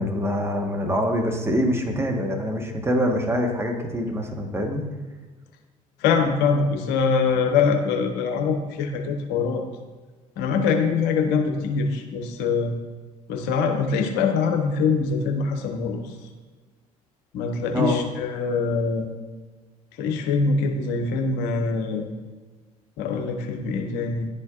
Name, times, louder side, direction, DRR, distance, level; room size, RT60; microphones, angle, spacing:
voice 1, 0.0-4.8 17.7-18.0, equal, 15° right, 2 dB, 1.3 m, -24 dB
voice 2, 6.0-9.6 10.4-12.7 13.3-16.0 17.3-19.1 20.0-22.0 23.0-24.3, left 5 dB, 65° left, 4 dB, 0.9 m, -23 dB
11.0 x 4.5 x 2.4 m, 1.3 s
hypercardioid pair, 55°, 19 cm